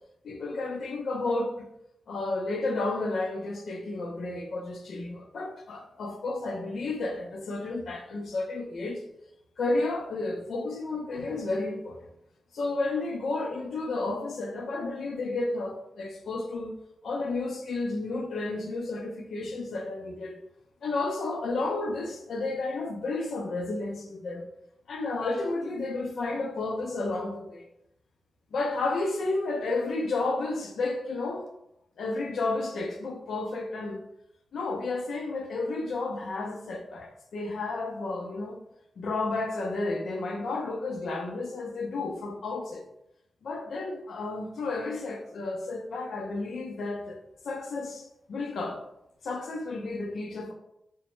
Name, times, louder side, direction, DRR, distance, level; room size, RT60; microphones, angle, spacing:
voice 1, 0.2-1.7 2.1-9.0 9.6-12.0 12.5-16.7 17.0-20.4 20.8-24.5 24.9-27.7 28.5-31.5 32.0-34.0 34.5-38.6 39.0-42.8 43.4-47.2 47.4-48.8 49.2-50.5, left 2 dB, 75° left, 0.5 m, -32 dB
3.0 x 2.0 x 3.0 m
cardioid pair, 95°, 0 cm